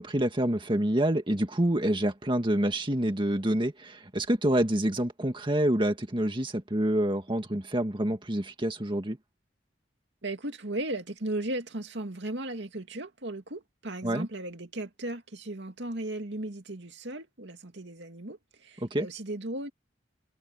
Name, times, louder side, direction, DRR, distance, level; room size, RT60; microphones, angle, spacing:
voice 1, 0.0-9.2 14.0-14.3 18.8-19.1, right 1 dB, 25° right, 1.9 m, -27 dB
voice 2, 10.2-19.7, right 1 dB, 70° right, 2.5 m, -36 dB
head